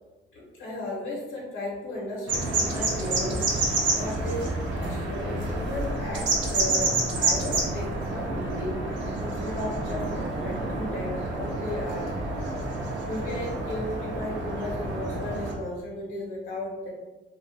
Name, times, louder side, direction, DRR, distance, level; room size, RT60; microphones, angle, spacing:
voice 1, 0.3-3.4 3.9-12.1 13.1-16.9, left 1 dB, 80° left, -4 dB, 0.9 m, -35 dB
sound 1, 2.3-15.5, right 2 dB, 70° right, 0.6 m, -29 dB
2.4 x 2.3 x 2.6 m, 1.2 s
cardioid pair, 90°, 20 cm